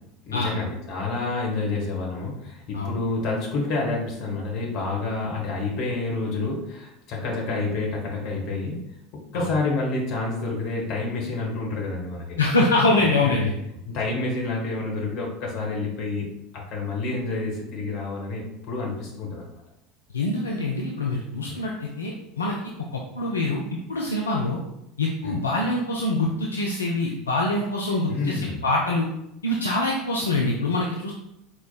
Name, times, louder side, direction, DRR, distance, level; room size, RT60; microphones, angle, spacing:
voice 1, 0.3-8.8 9.3-12.4 13.2-13.3 13.9-16.3 16.5-19.5 21.5-21.6 25.2-25.4 28.1-28.6, left 3 dB, 50° left, -2 dB, 1.3 m, -28 dB
voice 2, 12.4-13.5 20.1-22.6 22.9-23.6 23.9-24.6 25.0-29.1 29.4-31.1, left 2 dB, 75° left, -2 dB, 0.4 m, -24 dB
4.4 x 4.3 x 2.3 m, 0.84 s
figure-of-eight pair, 75°, 0 cm